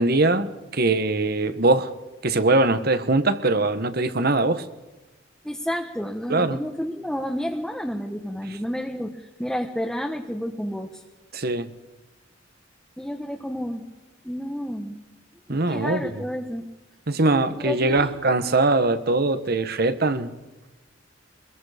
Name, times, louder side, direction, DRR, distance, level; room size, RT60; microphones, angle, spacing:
voice 1, 0.0-1.9 2.2-4.6 6.3-6.6 11.3-11.7 15.5-16.2 17.1-20.3, right 2 dB, 55° right, 1.3 m, -22 dB
voice 2, 5.4-11.0 13.0-13.8 14.2-15.0 15.5-16.6 17.5-18.1, equal, 5° left, 1.2 m, -30 dB
24.5 x 22.5 x 5.1 m
head